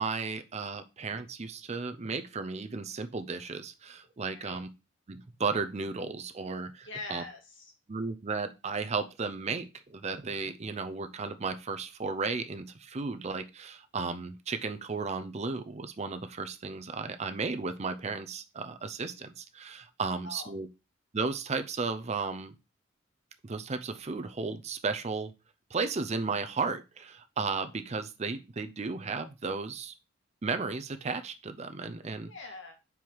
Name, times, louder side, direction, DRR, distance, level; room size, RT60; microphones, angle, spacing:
voice 1, 0.0-4.7 5.1-7.2 7.9-20.7 21.1-22.5 23.4-25.3 25.7-29.9 30.4-32.3, right 4 dB, 35° right, 9 dB, 0.5 m, -34 dB
voice 2, 6.8-7.7 20.2-20.5 32.3-32.7, left 2 dB, 65° left, 3 dB, 1.8 m, -43 dB
5.5 x 4.7 x 4.6 m, 0.27 s
head